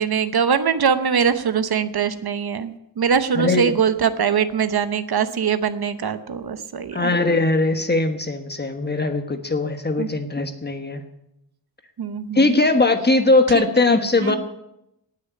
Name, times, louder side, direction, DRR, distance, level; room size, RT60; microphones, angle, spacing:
voice 1, 0.0-7.1 10.0-10.1 12.0-12.6 13.5-13.6 14.2-14.4, right 7 dB, 60° right, 11 dB, 0.9 m, -22 dB
voice 2, 3.3-3.8 6.9-11.0 12.3-14.4, left 2 dB, 25° left, 6 dB, 1.3 m, -20 dB
18.5 x 6.6 x 9.8 m, 0.83 s
wide cardioid pair, 180°, 44 cm